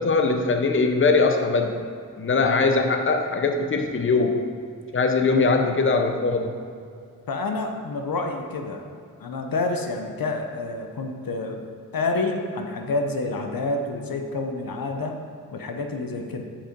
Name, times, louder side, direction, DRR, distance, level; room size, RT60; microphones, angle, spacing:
voice 1, 0.0-1.8 2.2-4.5 4.9-6.6, left 3 dB, 35° left, 5 dB, 0.7 m, -21 dB
voice 2, 7.3-8.8 9.2-11.6 11.9-15.2 15.5-16.4, left 3 dB, 70° left, 4 dB, 0.8 m, -28 dB
7.2 x 5.2 x 5.3 m, 2.3 s
cardioid pair, 55°, 36 cm